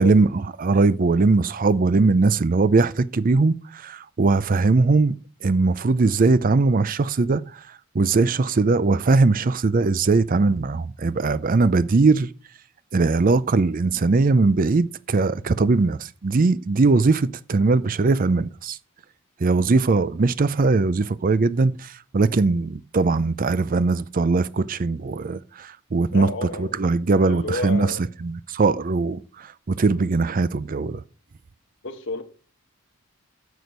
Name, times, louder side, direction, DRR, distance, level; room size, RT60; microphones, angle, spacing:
voice 1, 0.0-5.2 5.4-7.6 7.9-12.3 12.9-18.8 19.4-31.0, right 3 dB, 40° right, 0.5 m, -20 dB
voice 2, 26.1-26.8 27.1-28.0 31.8-32.2, left 2 dB, 55° left, 1.2 m, -31 dB
9.5 x 6.4 x 5.1 m
head